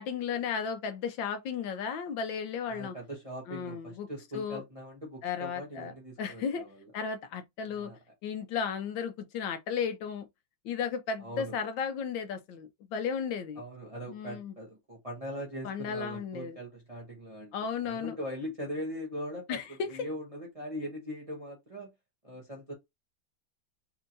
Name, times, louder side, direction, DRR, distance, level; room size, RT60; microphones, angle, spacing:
voice 1, 0.0-2.9 3.5-4.1 4.3-4.6 5.2-6.6 6.9-7.9 8.2-10.3 10.6-13.6 14.1-14.5 15.6-16.6 17.5-18.2 19.5-20.1, left 6 dB, 75° left, 1.3 m, -34 dB
voice 2, 2.7-6.9 7.7-8.0 11.2-11.5 13.6-17.5 17.8-19.6 19.9-21.9 22.2-22.7, equal, 25° right, 0.8 m, -41 dB
4.3 x 2.8 x 2.5 m
omnidirectional pair, 2.2 m